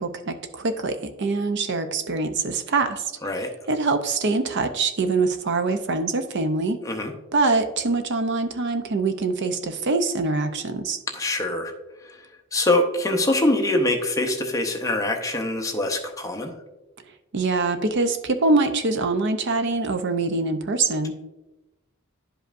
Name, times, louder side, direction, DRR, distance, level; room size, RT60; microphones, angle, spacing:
voice 1, 0.0-3.1 3.7-6.8 7.3-11.0 17.3-21.1, right 3 dB, 55° right, 8 dB, 0.6 m, -24 dB
voice 2, 11.1-11.7 12.0-12.2 12.5-16.5, left 2 dB, 15° left, 3 dB, 0.7 m, -24 dB
11.0 x 5.3 x 2.6 m, 1.0 s
head